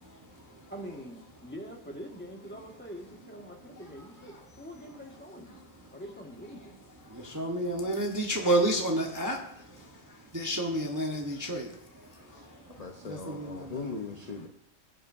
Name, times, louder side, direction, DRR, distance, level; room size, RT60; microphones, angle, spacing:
voice 1, 0.7-5.6 5.9-6.9, equal, 10° left, 0 dB, 1.6 m, -44 dB
voice 2, 7.3-9.4 10.3-11.7 13.1-13.8, right 1 dB, 15° right, 0 dB, 0.9 m, -29 dB
voice 3, 12.8-14.5, left 4 dB, 35° left, 3 dB, 0.8 m, -40 dB
21.5 x 7.7 x 2.6 m, 0.81 s
omnidirectional pair, 1.4 m